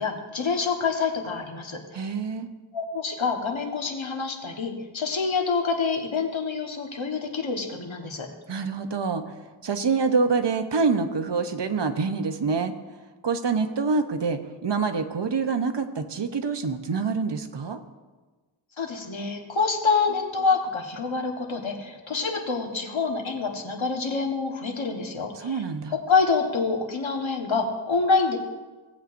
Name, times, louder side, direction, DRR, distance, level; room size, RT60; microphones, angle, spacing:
voice 1, 0.0-2.1 2.7-8.3 18.8-25.6 25.9-28.4, left 4 dB, 70° left, 1 dB, 1.4 m, -26 dB
voice 2, 1.9-2.5 8.5-12.7 13.2-17.8 25.4-25.9, right 4 dB, 60° right, 7 dB, 0.9 m, -26 dB
17.5 x 8.1 x 2.6 m, 1.3 s
wide cardioid pair, 65°, 48 cm